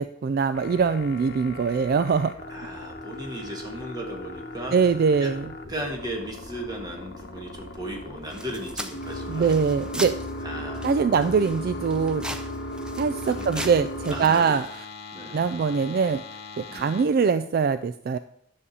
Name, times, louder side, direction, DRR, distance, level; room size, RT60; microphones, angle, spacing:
voice 1, 0.0-2.4 4.7-5.5 9.3-10.1 10.8-12.2 13.0-14.8 15.3-16.2 16.6-18.2, right 5 dB, 50° right, 12 dB, 0.3 m, -23 dB
sound 1, 0.5-17.0, left 1 dB, 55° left, 1.0 m, -37 dB
voice 2, 2.5-4.8 5.2-5.3 5.7-9.6 10.4-11.3 13.2-13.7 14.1-14.6 15.1-15.4 16.7-17.0, right 1 dB, 20° right, 1 dB, 1.6 m, -36 dB
sound 2, 8.3-10.4 10.7-14.8, right 1 dB, 5° right, 0.5 m, -39 dB
9.9 x 6.7 x 4.2 m, 0.69 s
head